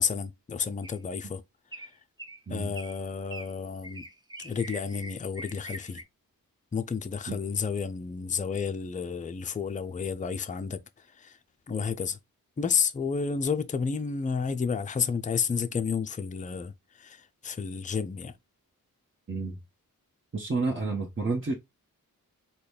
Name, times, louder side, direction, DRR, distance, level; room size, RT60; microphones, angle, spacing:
voice 1, 0.0-1.4 1.8-1.9 2.5-4.1 4.4-6.0 6.7-11.4 11.7-12.2 12.6-18.3, left 6 dB, 20° left, 0.4 m, -31 dB
sound 1, 0.8-1.2 1.7-2.4 2.8-3.0 3.3-3.5 3.8-6.0, right 1 dB, 10° right, 0.7 m, -43 dB
voice 2, 19.3-19.6 20.3-21.5, right 3 dB, 35° right, 1.0 m, -30 dB
3.9 x 2.3 x 3.2 m
cardioid pair, 50°, 36 cm